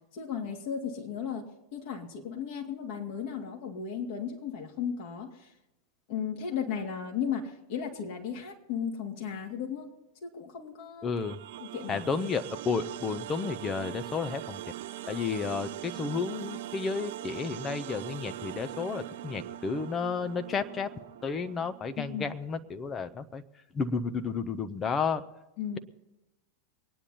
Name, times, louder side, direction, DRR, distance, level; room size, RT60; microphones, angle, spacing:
voice 1, 0.1-5.4 6.1-9.9 10.2-11.1 11.6-12.1 22.0-22.3 25.6-25.8, left 7 dB, 50° left, 0 dB, 2.8 m, -35 dB
voice 2, 11.0-11.4 11.9-14.6 15.1-20.9 21.2-23.4 23.7-25.2, left 5 dB, 20° left, 9 dB, 0.9 m, -32 dB
sound 1, 11.1-22.2, right 13 dB, 55° right, 0.4 m, -41 dB
23.5 x 10.0 x 4.1 m, 0.97 s
figure-of-eight pair, 90°, 0 cm